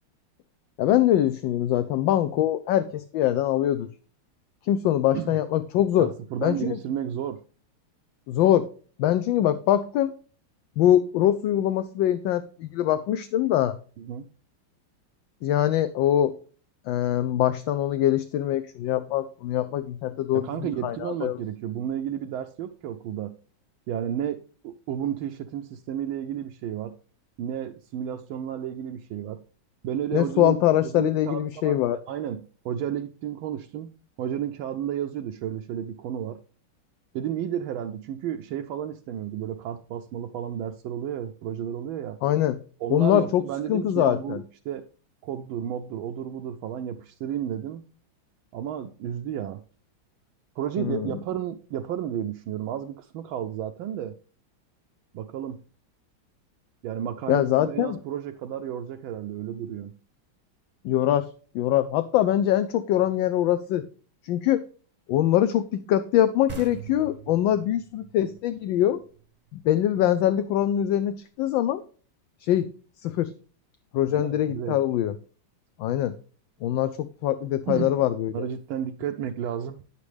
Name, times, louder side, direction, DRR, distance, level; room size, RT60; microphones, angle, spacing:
voice 1, 0.8-3.9 4.7-6.1 6.4-6.8 8.3-8.7 9.0-10.1 10.8-13.8 15.4-16.3 16.9-20.5 20.8-21.4 30.1-32.0 42.2-42.6 42.9-44.4 50.8-51.1 57.3-58.0 60.8-61.3 61.5-63.9 64.2-64.6 65.1-69.0 69.5-71.8 72.4-72.7 73.0-73.3 73.9-75.1 75.8-76.1 76.6-76.9 77.2-78.5, left 12 dB, 75° left, 1.2 m, -23 dB
voice 2, 6.0-7.4 14.0-14.2 20.3-23.4 23.9-26.9 27.4-29.4 29.8-30.6 30.8-33.9 34.2-36.4 37.1-42.2 42.8-44.8 45.2-47.8 48.5-49.6 50.6-54.1 55.1-55.6 56.8-59.9 74.1-74.8 77.7-77.9 78.3-79.8, right 10 dB, 75° right, 1.3 m, -32 dB
sound 1, 66.5-69.9, right 4 dB, 25° right, 0.9 m, -42 dB
9.8 x 8.4 x 3.3 m
omnidirectional pair, 2.3 m